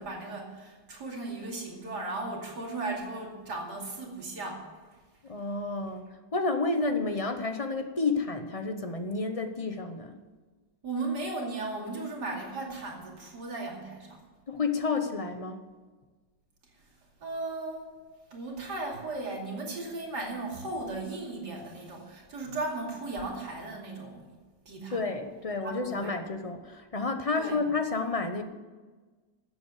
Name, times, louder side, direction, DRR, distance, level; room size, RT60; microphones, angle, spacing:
voice 1, 0.0-4.7 10.8-14.2 17.2-17.9 18.3-24.3 24.7-25.1 25.6-26.2 27.4-27.6, right 2 dB, 65° right, -1 dB, 3.2 m, -36 dB
voice 2, 5.2-6.0 6.3-10.1 14.5-15.6 24.9-28.4, left 3 dB, 30° left, 7 dB, 0.7 m, -30 dB
13.0 x 8.3 x 8.1 m, 1.3 s
omnidirectional pair, 1.9 m